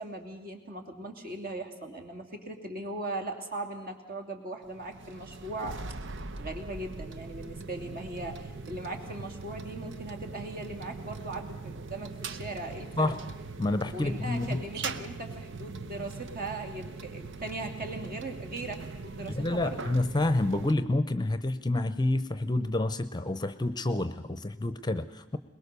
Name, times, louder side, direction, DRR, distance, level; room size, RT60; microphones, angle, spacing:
voice 1, 0.0-5.8 6.4-13.1 13.9-19.9, right 2 dB, 45° right, 4 dB, 2.9 m, -39 dB
sound 1, 4.6-20.7, right 4 dB, 65° right, 0.9 m, -41 dB
voice 2, 13.6-14.6 19.3-25.4, left 2 dB, 20° left, 12 dB, 0.8 m, -28 dB
22.5 x 21.0 x 6.8 m, 1.1 s
head